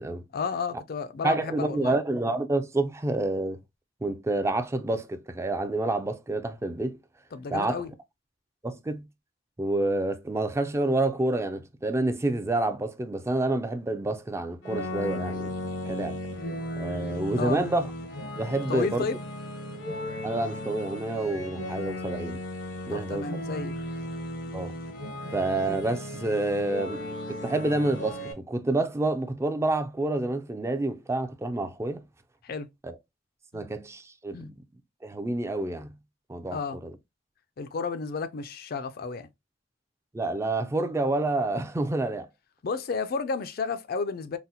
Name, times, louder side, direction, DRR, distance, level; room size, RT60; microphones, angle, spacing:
voice 1, 0.3-1.9 7.3-7.9 17.4-17.6 18.7-19.2 22.9-23.8 24.5-24.6 25.2-25.4 32.4-32.7 33.5-33.7 34.3-34.5 36.5-36.8 37.6-39.3 42.6-44.4, left 5 dB, 55° left, 0.4 m, -32 dB
voice 2, 1.2-3.6 4.0-7.0 7.5-7.8 8.6-9.1 9.6-15.5 15.9-16.2 16.8-17.9 18.4-19.1 20.2-22.4 22.9-23.3 24.5-24.7 25.3-27.0 27.3-32.0 32.8-33.0 33.5-34.6 35.0-35.9 36.3-36.9 40.1-42.3, right 2 dB, 15° right, 0.3 m, -28 dB
sound 1, 14.6-28.3, left 1 dB, 80° left, 0.8 m, -36 dB
3.9 x 2.0 x 2.7 m
head